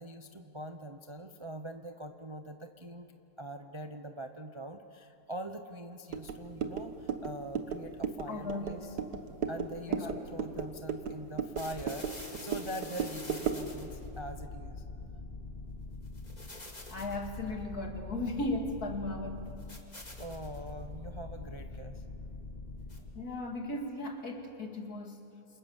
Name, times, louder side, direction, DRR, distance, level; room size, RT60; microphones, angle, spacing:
voice 1, 0.0-3.1 3.4-9.0 9.5-14.8 19.9-22.0, right 1 dB, 25° right, 6 dB, 0.7 m, -43 dB
sound 1, 6.1-13.7, right 6 dB, 70° right, 1.8 m, -36 dB
voice 2, 8.3-8.9 9.9-10.2 16.9-19.5 23.1-25.2, left 2 dB, 60° left, 3 dB, 2.8 m, -36 dB
sound 2, 11.6-23.4, left 3 dB, 25° left, 2.5 m, -44 dB
27.5 x 27.0 x 7.3 m, 2.8 s
omnidirectional pair, 1.8 m